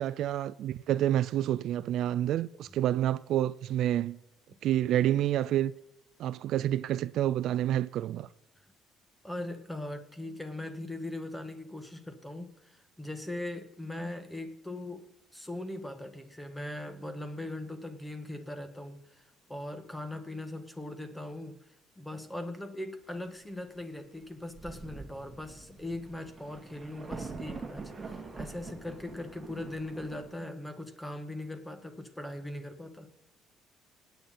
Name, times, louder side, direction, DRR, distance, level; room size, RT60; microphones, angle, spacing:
voice 1, 0.0-4.2 4.6-5.7 6.2-8.3, right 12 dB, 60° right, 0.4 m, -28 dB
voice 2, 9.2-15.1 15.3-21.6 22.0-33.1, left 1 dB, 5° left, 1.6 m, -40 dB
Thunder, 24.2-24.3 24.5-30.3, right 4 dB, 20° right, 2.2 m, -44 dB
26.5 x 9.3 x 4.3 m
cardioid pair, 145°, 0 cm